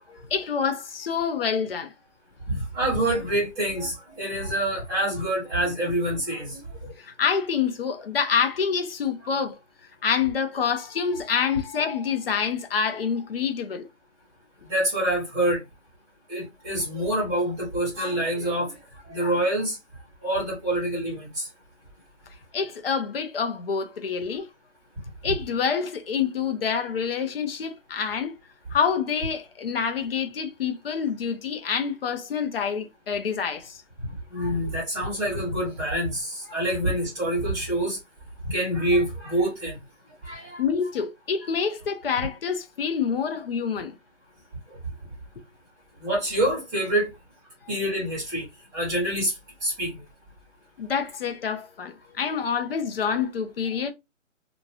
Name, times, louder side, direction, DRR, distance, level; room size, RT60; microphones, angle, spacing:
voice 1, 0.1-1.9 6.8-9.5 10.0-13.9 22.5-24.5 25.2-28.3 28.7-33.8 40.6-43.9 50.8-53.9, left 6 dB, 50° left, 0.7 m, -27 dB
voice 2, 2.5-6.6 14.6-15.6 16.3-18.8 19.1-19.8 20.2-21.5 25.2-25.3 34.3-38.0 38.5-39.7 40.2-40.6 44.7-44.8 46.0-47.1 47.7-48.4 48.7-49.3 49.6-49.9, right 1 dB, 10° right, 1.3 m, -26 dB
2.9 x 2.7 x 2.8 m
hypercardioid pair, 160°, 37 cm